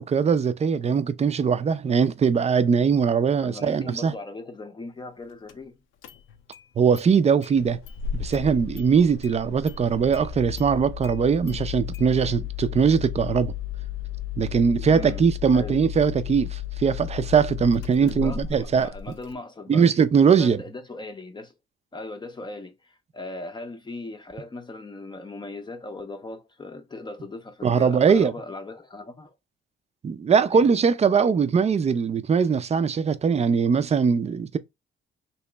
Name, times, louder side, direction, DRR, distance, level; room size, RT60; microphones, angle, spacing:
voice 1, 0.0-4.1 6.8-7.8 8.1-13.5 14.4-18.9 19.7-20.6 27.6-28.3 30.0-34.6, right 6 dB, 35° right, 0.5 m, -21 dB
voice 2, 3.4-5.8 14.9-15.2 15.5-15.8 18.0-19.9 20.4-21.5 21.9-29.3 30.5-30.7, left 2 dB, 20° left, 0.6 m, -38 dB
Engine starting, 5.5-5.6 6.0-6.6 7.0-7.1 7.4-19.3, left 9 dB, 90° left, 0.6 m, -34 dB
3.0 x 2.9 x 3.3 m
cardioid pair, 90°, 20 cm